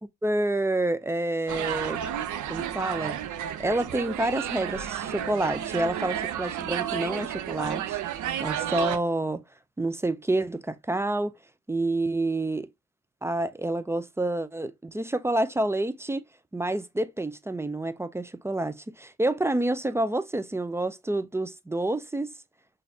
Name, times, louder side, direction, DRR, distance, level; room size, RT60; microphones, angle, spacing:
voice 1, 0.2-2.0 2.5-3.2 3.6-8.0 8.4-9.4 9.8-11.3 11.7-12.7 13.2-16.2 16.5-22.3, right 2 dB, 5° right, 0.3 m, -28 dB
sound 1, 1.5-9.0, right 10 dB, 50° right, 0.6 m, -32 dB
5.6 x 2.6 x 2.7 m
hypercardioid pair, 60°, 40 cm